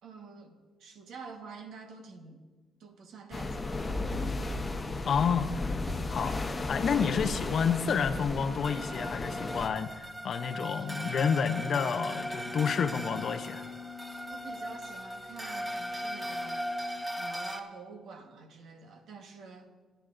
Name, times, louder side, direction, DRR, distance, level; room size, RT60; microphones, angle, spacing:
voice 1, 0.0-2.4 2.8-4.3 14.3-19.7, right 5 dB, 75° right, 4 dB, 1.3 m, -48 dB
sound 1, 3.3-9.7, left 2 dB, 25° left, 1.0 m, -34 dB
voice 2, 5.0-5.7 6.1-6.4 6.7-13.7, left 6 dB, 55° left, 11 dB, 0.6 m, -29 dB
sound 2, 8.6-17.6, equal, 15° right, 0.9 m, -38 dB
sound 3, 11.6-17.1, left 4 dB, 5° left, 1.5 m, -47 dB
23.5 x 9.1 x 2.6 m, 1.4 s
cardioid pair, 90°, 0 cm